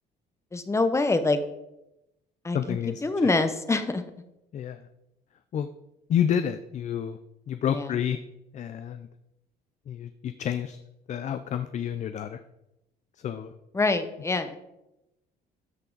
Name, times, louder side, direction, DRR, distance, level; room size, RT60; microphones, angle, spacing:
voice 1, 0.5-1.4 2.4-4.0 7.7-7.9 13.7-14.6, left 3 dB, 15° left, 9 dB, 0.9 m, -25 dB
voice 2, 2.5-3.0 4.5-4.8 5.5-5.7 6.1-7.2 7.5-8.2 8.5-9.1 9.9-10.8 11.1-12.4 13.2-13.5, left 9 dB, 45° left, 10 dB, 0.5 m, -29 dB
13.0 x 5.7 x 4.0 m, 0.90 s
cardioid pair, 110°, 17 cm